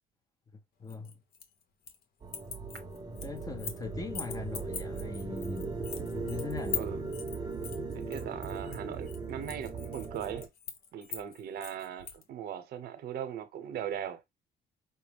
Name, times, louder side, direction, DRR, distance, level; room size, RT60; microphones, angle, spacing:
voice 1, 0.8-1.2 3.2-5.9 6.1-6.9, left 4 dB, 20° left, 0.8 m, -40 dB
sound 1, 0.9-2.0 2.3-3.8 4.1-12.2, left 8 dB, 65° left, 1.1 m, -42 dB
sound 2, 2.2-10.5, right 4 dB, 25° right, 0.8 m, -38 dB
voice 2, 7.9-10.5 10.9-14.2, right 9 dB, 70° right, 0.9 m, -39 dB
5.8 x 2.1 x 3.4 m
cardioid pair, 110°, 17 cm